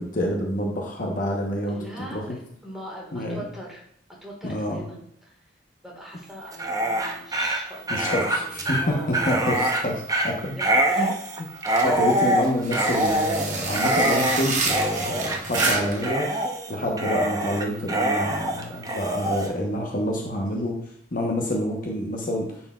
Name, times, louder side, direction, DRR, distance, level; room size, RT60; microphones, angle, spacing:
voice 1, 0.0-1.8 2.1-2.4 3.1-3.4 4.4-4.8 7.9-9.5 9.8-10.6 11.0-11.1 11.8-16.3 16.7-20.8 21.1-22.6, left 1 dB, 45° left, 0 dB, 0.9 m, -27 dB
voice 2, 1.7-3.8 4.2-5.4 5.8-9.5 10.6-11.2 11.7-12.0, equal, ahead, -3 dB, 1.5 m, -41 dB
Dog, 6.5-19.5, right 1 dB, 20° right, 0.6 m, -25 dB
sound 1, 11.6-16.1, right 4 dB, 40° right, 0.9 m, -30 dB
9.4 x 4.3 x 2.3 m, 0.68 s
head